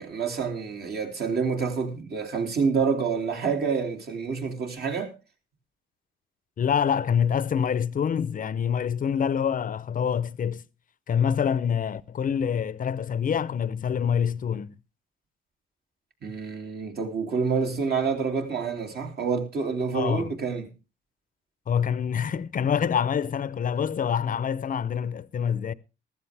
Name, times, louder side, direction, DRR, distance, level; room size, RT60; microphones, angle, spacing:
voice 1, 0.0-5.1 16.2-20.7, right 5 dB, 55° right, 2.8 m, -28 dB
voice 2, 6.6-10.6 11.1-14.7 19.9-20.3 21.7-25.7, left 7 dB, 45° left, 0.7 m, -26 dB
14.5 x 13.0 x 3.4 m
cardioid pair, 90°, 20 cm